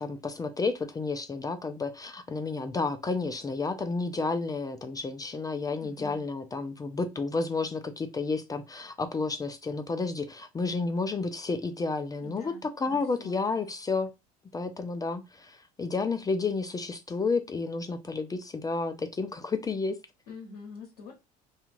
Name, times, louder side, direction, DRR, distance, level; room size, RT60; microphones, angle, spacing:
voice 1, 0.0-14.1 14.5-20.0, left 4 dB, 20° left, 0.4 m, -31 dB
voice 2, 5.8-6.2 12.2-13.7 20.3-21.1, left 3 dB, 85° left, 0.8 m, -46 dB
2.4 x 2.3 x 3.0 m
hypercardioid pair, 70°, 20 cm